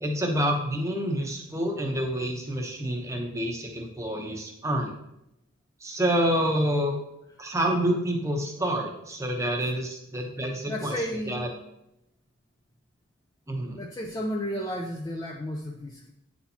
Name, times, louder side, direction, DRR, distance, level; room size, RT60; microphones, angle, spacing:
voice 1, 0.0-4.9 5.8-7.0 7.4-11.0 11.3-11.5 13.5-13.8, equal, 15° right, 2 dB, 0.8 m, -28 dB
voice 2, 10.7-11.4 13.7-16.1, equal, 15° left, 0 dB, 0.4 m, -33 dB
9.0 x 4.3 x 2.8 m, 0.84 s
head